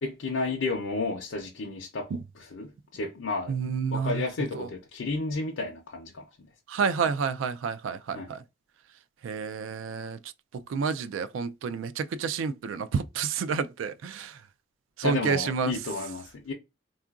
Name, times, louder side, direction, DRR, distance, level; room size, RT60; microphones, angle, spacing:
voice 1, 0.0-3.5 3.9-6.5 8.1-8.3 15.0-16.5, left 3 dB, 85° left, 0.6 m, -32 dB
voice 2, 3.5-4.2 4.5-4.7 6.7-8.4 9.2-10.2 10.5-14.3 15.0-15.7, right 6 dB, 85° right, 0.3 m, -29 dB
3.6 x 2.4 x 2.3 m
head